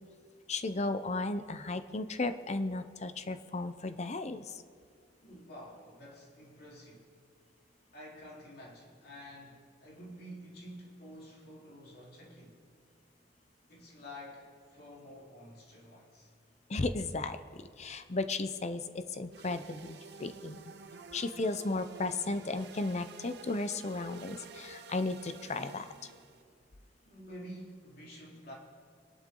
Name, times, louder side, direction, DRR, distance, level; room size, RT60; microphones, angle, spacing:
voice 1, 0.5-4.5 16.7-20.6 21.1-25.9, left 2 dB, 40° left, 0.7 m, -35 dB
voice 2, 5.2-7.1 7.9-12.6 13.7-16.3 26.1-26.4 27.0-28.5, equal, 60° left, 3.9 m, -50 dB
sound 1, 19.3-26.4, right 4 dB, 65° right, 0.8 m, -50 dB
24.5 x 11.5 x 3.9 m
head